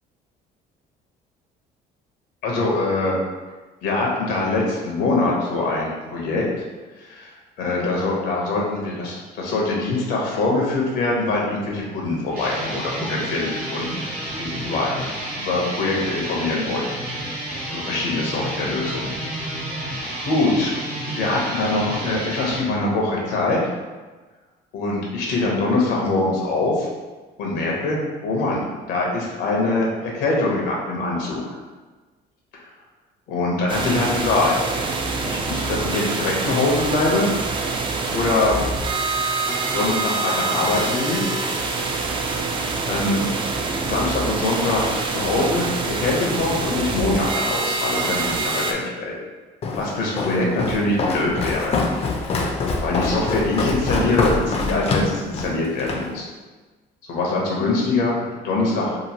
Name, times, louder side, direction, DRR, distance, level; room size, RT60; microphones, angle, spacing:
voice 1, 2.4-3.1 3.8-6.4 7.0-7.3 7.6-14.0 14.4-17.0 17.7-19.1 19.7-19.8 20.2-23.6 24.7-26.9 27.4-31.6 32.5-32.7 33.3-34.6 35.2-37.3 38.1-38.6 39.7-41.3 42.9-43.2 43.8-49.2 49.8-51.8 52.2-52.5 52.8-56.3 57.1-59.0, left 2 dB, 85° left, -2 dB, 0.8 m, -23 dB
sound 1, 12.3-22.6, right 1 dB, 60° right, 1.0 m, -30 dB
sound 2, 33.7-48.7, right 3 dB, 30° right, 0.3 m, -25 dB
Walk footsteps, 49.6-56.1, left 3 dB, 35° left, 0.4 m, -25 dB
2.9 x 2.5 x 2.8 m, 1.3 s
cardioid pair, 110°, 17 cm